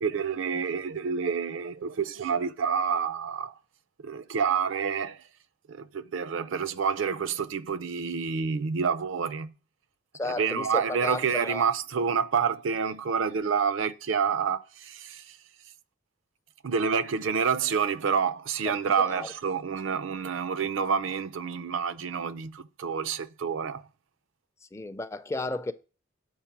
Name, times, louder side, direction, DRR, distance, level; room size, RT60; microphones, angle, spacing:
voice 1, 0.0-3.5 4.0-5.2 5.7-9.5 10.2-15.4 16.6-23.9, right 6 dB, 75° right, 0.5 m, -28 dB
voice 2, 10.1-11.6 19.0-19.3 24.7-25.7, left 2 dB, 15° left, 0.4 m, -33 dB
6.8 x 5.0 x 5.9 m
head